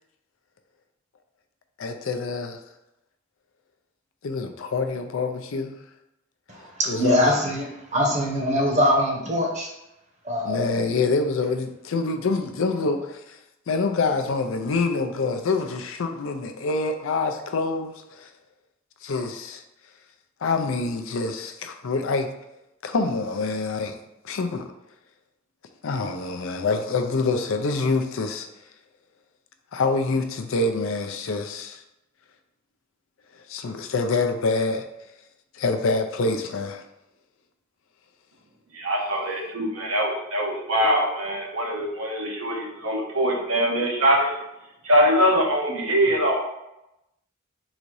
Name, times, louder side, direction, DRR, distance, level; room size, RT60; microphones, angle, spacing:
voice 1, 1.8-2.6 4.2-5.7 6.9-7.3 10.5-13.4 13.7-18.3 19.0-19.6 20.4-22.3 22.8-24.0 24.2-24.7 25.8-28.5 29.7-31.8 33.5-34.8 35.5-36.8, left 3 dB, 70° left, 6 dB, 0.5 m, -26 dB
voice 2, 6.5-9.7 10.2-10.8, equal, 35° right, 0 dB, 0.9 m, -23 dB
voice 3, 38.7-44.4 44.8-46.4, equal, 80° right, 0 dB, 1.0 m, -23 dB
4.0 x 2.6 x 4.7 m, 0.88 s
head